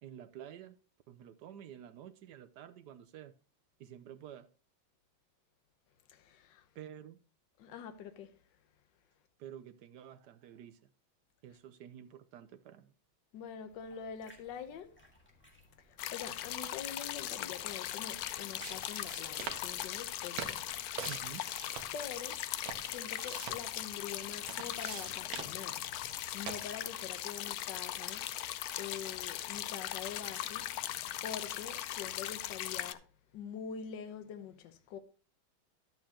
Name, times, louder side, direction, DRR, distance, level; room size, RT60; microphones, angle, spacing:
voice 1, 0.0-0.8 1.1-3.3 3.8-4.5 6.7-7.2 9.4-10.8 11.4-12.9 21.1-21.4, right 10 dB, 70° right, 1.2 m, -50 dB
voice 2, 6.1-6.7 7.6-8.4 13.3-15.1 15.8-20.6 21.9-22.4 22.9-25.9 26.3-28.3 28.8-30.7 31.2-33.1 33.3-35.0, left 7 dB, 65° left, 1.5 m, -45 dB
sound 1, 13.7-21.7, equal, 5° left, 1.7 m, -65 dB
sound 2, 16.0-32.9, left 12 dB, 85° left, 0.8 m, -39 dB
sound 3, 18.0-26.9, right 8 dB, 85° right, 1.7 m, -47 dB
11.5 x 7.6 x 2.9 m
omnidirectional pair, 2.2 m